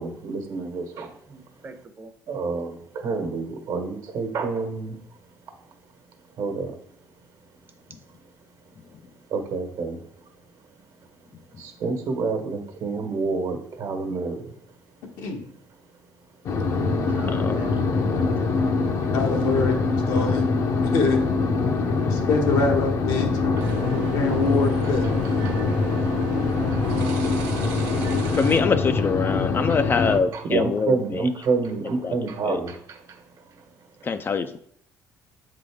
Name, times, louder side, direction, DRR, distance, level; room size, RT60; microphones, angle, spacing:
voice 1, 0.0-1.1 2.3-5.0 6.4-6.7 9.3-10.0 11.6-14.5 23.4-23.7 25.2-25.6 26.7-26.8 29.7-29.8 30.3-33.2, right 4 dB, 65° right, 1.2 m, -28 dB
voice 2, 1.3-2.1 17.1-18.9, right 3 dB, 30° right, 0.9 m, -44 dB
sound 1, 16.5-30.2, left 4 dB, 55° left, 0.8 m, -23 dB
voice 3, 17.3-17.6 28.3-31.3 32.0-32.2 32.4-32.6 34.0-34.6, left 5 dB, 35° left, 0.4 m, -24 dB
voice 4, 19.1-19.8 20.1-20.5 20.8-21.2 22.1-23.3 24.1-25.0, left 4 dB, 75° left, 1.1 m, -24 dB
sound 2, 23.6-28.6, right 6 dB, 90° right, 0.9 m, -35 dB
7.5 x 3.8 x 3.6 m
cardioid pair, 95°, 7 cm